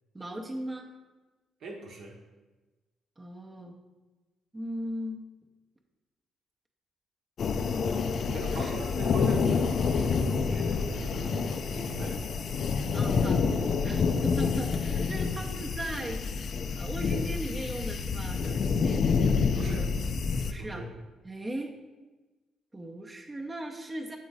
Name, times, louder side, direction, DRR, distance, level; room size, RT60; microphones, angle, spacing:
voice 1, 0.1-0.9 3.2-3.8 4.5-5.2 8.2-8.8 12.9-13.4 13.8-19.1 19.6-19.9 20.5-20.8 21.2-21.7 22.7-24.2, right 1 dB, 25° right, 1 dB, 0.7 m, -38 dB
voice 2, 1.6-2.2 8.3-12.2 15.2-15.3 19.5-19.8 20.6-20.9, right 2 dB, 60° right, 1 dB, 0.9 m, -40 dB
sound 1, 7.4-20.5, left 5 dB, 55° left, 0.4 m, -28 dB
7.0 x 3.8 x 4.0 m, 1.2 s
figure-of-eight pair, 40°, 0 cm